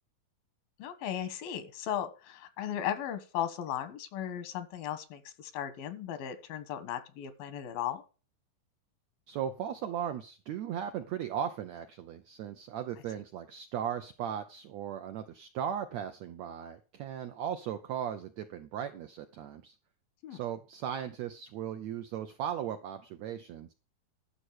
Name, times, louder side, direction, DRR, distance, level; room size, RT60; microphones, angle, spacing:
voice 1, 0.8-8.0 20.2-20.4, left 10 dB, 85° left, 12 dB, 3.1 m, -36 dB
voice 2, 9.3-19.7 20.3-23.7, right 9 dB, 80° right, 8 dB, 1.5 m, -37 dB
12.5 x 6.3 x 6.4 m, 0.34 s
omnidirectional pair, 4.1 m